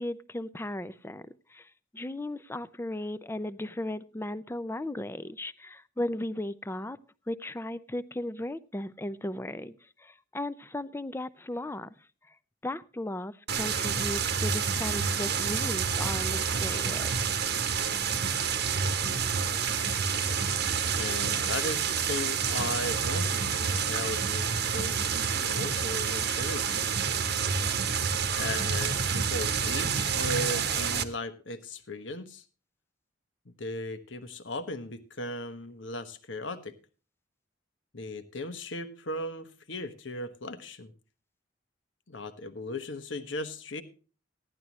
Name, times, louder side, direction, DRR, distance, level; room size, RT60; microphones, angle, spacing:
voice 1, 0.0-7.0 7.3-11.9 12.3-12.4 12.6-17.1, left 1 dB, 15° left, 0.5 m, -36 dB
sound 1, 13.5-31.0, right 6 dB, 60° right, 1.0 m, -28 dB
voice 2, 20.9-26.8 28.3-32.4 33.6-36.8 37.9-40.9 42.1-43.8, left 2 dB, 70° left, 1.2 m, -37 dB
15.5 x 11.0 x 3.0 m
head